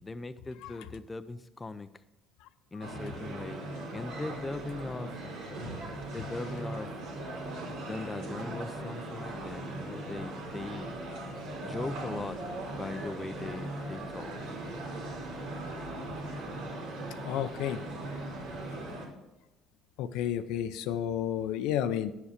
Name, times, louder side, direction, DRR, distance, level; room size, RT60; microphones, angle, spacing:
voice 1, 0.0-1.9 2.7-3.6 3.9-5.2 6.1-6.9 7.8-10.9 11.6-12.4 12.7-14.3, left 3 dB, 20° left, 11 dB, 0.5 m, -39 dB
sound 1, 2.8-19.0, right 2 dB, 90° right, 3.0 m, -39 dB
voice 2, 17.2-17.8 20.0-22.1, left 10 dB, 85° left, 11 dB, 0.5 m, -31 dB
10.5 x 7.2 x 5.0 m, 0.98 s
cardioid pair, 115°, 0 cm